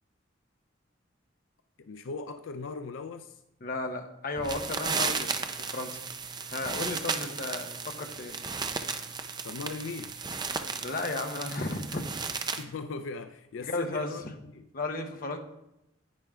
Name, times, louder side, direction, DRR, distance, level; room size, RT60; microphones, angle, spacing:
voice 1, 1.8-3.4 9.4-10.1 12.6-14.7, left 4 dB, 85° left, 0.5 m, -39 dB
voice 2, 3.6-6.0 6.5-8.3 10.8-12.0 13.6-14.1 14.7-15.4, left 2 dB, 45° left, 1.1 m, -34 dB
voodoo LP static, 4.4-12.6, right 5 dB, 20° right, 0.6 m, -34 dB
10.5 x 8.9 x 3.6 m
head